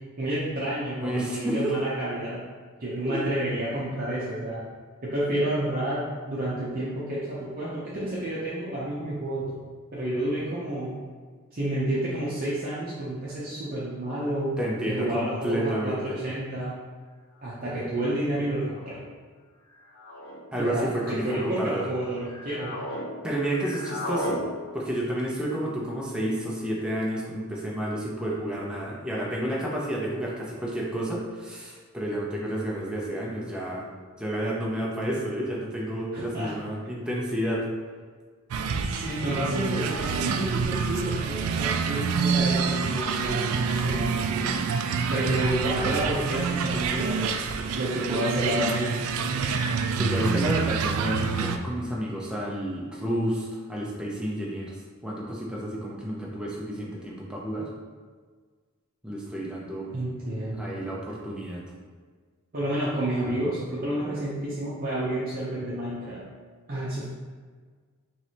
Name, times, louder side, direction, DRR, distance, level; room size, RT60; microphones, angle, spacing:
voice 1, 0.2-2.4 2.8-4.6 5.0-9.5 9.9-10.9 11.5-14.5 14.9-16.7 17.4-19.0 20.5-22.7 36.1-36.5 38.8-44.6 45.1-47.4 47.8-49.0 59.9-60.8 62.5-66.2 66.7-67.1, right 1 dB, 40° right, -8 dB, 0.7 m, -30 dB
voice 2, 1.0-1.8 3.0-3.2 14.6-16.2 20.5-21.9 23.2-24.4 24.7-33.9 34.2-37.7 50.0-54.8 55.0-57.7 59.0-59.9 60.6-61.6, right 1 dB, 5° right, -4 dB, 0.5 m, -30 dB
sound 1, 17.4-17.7 18.7-19.1 19.9-20.4 21.0-21.7 22.2-23.1 23.3-24.4, equal, 65° left, 0.9 m, -36 dB
sound 2, 38.5-51.6, right 5 dB, 80° right, 0.3 m, -27 dB
4.5 x 3.1 x 2.9 m, 1.5 s
head